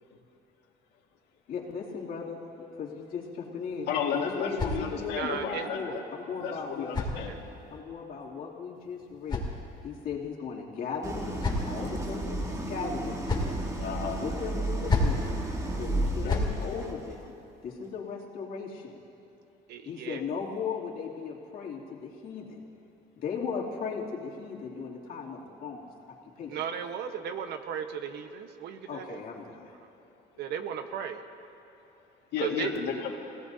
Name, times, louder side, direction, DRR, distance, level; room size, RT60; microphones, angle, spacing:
voice 1, 1.5-2.4 2.7-3.9 4.4-6.9 7.7-9.5 9.8-13.6 14.2-15.4 15.7-17.4 17.6-19.0 19.8-22.6 23.2-25.9 26.4-26.6 28.9-29.7, left 5 dB, 60° left, -3 dB, 2.8 m, -37 dB
sound 1, 3.7-5.3 6.3-7.8 8.8-10.1 10.9-12.0 12.9-13.6 14.6-15.3 16.0-16.6, left 2 dB, 25° left, 2.7 m, -33 dB
voice 2, 3.9-6.0 6.4-7.4 13.8-14.2 16.2-16.4 32.3-33.1, left 6 dB, 80° left, -1 dB, 2.0 m, -32 dB
voice 3, 5.2-5.7 7.1-7.4 19.7-20.2 26.5-29.2 30.4-31.2 32.4-32.7, right 8 dB, 75° right, 7 dB, 1.2 m, -35 dB
Idling, 11.0-17.1, right 1 dB, 20° right, 1.6 m, -33 dB
29.5 x 17.0 x 2.8 m, 2.9 s
cardioid pair, 110°, 17 cm